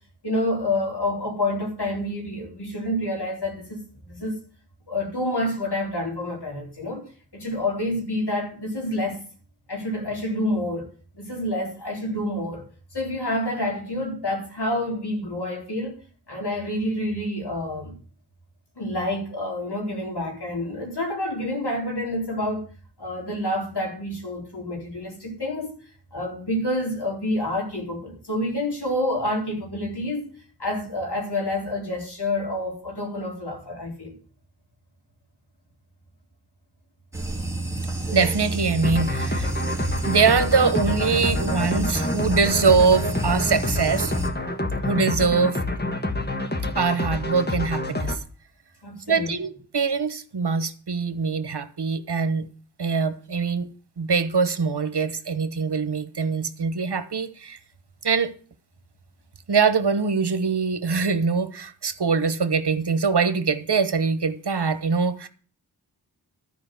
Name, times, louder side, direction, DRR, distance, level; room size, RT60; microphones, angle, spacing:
voice 1, 0.2-4.4 4.9-7.1 7.3-9.2 9.7-10.9 11.1-12.7 12.9-16.0 16.3-18.0 18.8-22.7 23.0-25.7 26.1-30.3 30.6-34.2 48.8-49.4, left 1 dB, 75° left, 4.1 m, -28 dB
sound 1, 37.1-44.3, right 2 dB, 5° right, 2.6 m, -29 dB
voice 2, 38.1-39.5 40.0-44.1 44.9-45.6 46.7-48.2 49.1-52.5 52.8-53.7 54.0-57.6 58.0-58.3 59.5-65.3, right 5 dB, 80° right, 1.2 m, -23 dB
sound 2, 38.8-48.2, left 2 dB, 25° left, 1.6 m, -28 dB
12.5 x 5.3 x 7.8 m
wide cardioid pair, 55°, 40 cm